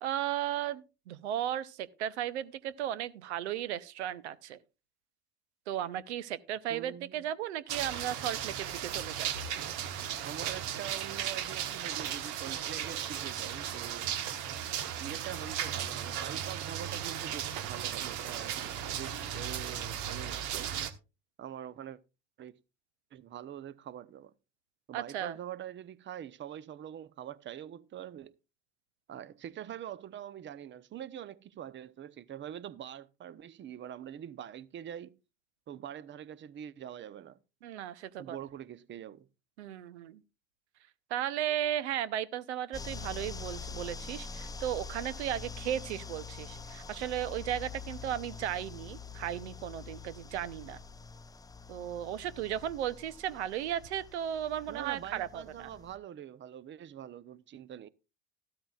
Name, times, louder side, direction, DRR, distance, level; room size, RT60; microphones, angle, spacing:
voice 1, 0.0-4.6 5.7-9.4 24.9-25.4 37.6-38.4 39.6-40.2 41.1-50.8 51.7-55.7, right 11 dB, 80° right, 0.7 m, -35 dB
voice 2, 6.7-7.2 10.2-14.2 15.0-20.7 21.4-22.0 22.4-22.6 23.1-24.3 24.9-28.4 29.1-35.2 35.7-37.4 38.2-39.3 54.7-57.9, right 10 dB, 35° right, 0.7 m, -44 dB
sound 1, 7.7-20.9, right 9 dB, 60° right, 1.2 m, -36 dB
sound 2, 42.7-56.0, left 5 dB, 10° left, 0.5 m, -45 dB
13.5 x 12.5 x 2.3 m
hypercardioid pair, 75°, 33 cm